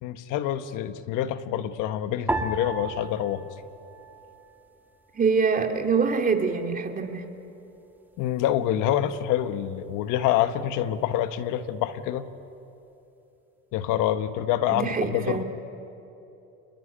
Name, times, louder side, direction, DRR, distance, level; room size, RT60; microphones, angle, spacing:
voice 1, 0.0-3.4 8.2-12.2 13.7-15.4, left 11 dB, 70° left, 11 dB, 1.3 m, -26 dB
sound 1, 2.3-4.8 5.1-6.0 6.6-7.0, right 2 dB, 5° right, 1.8 m, -34 dB
voice 2, 5.1-7.3 14.7-15.4, right 5 dB, 25° right, 4 dB, 2.7 m, -25 dB
28.5 x 20.5 x 9.9 m, 2.9 s
cardioid pair, 110°, 32 cm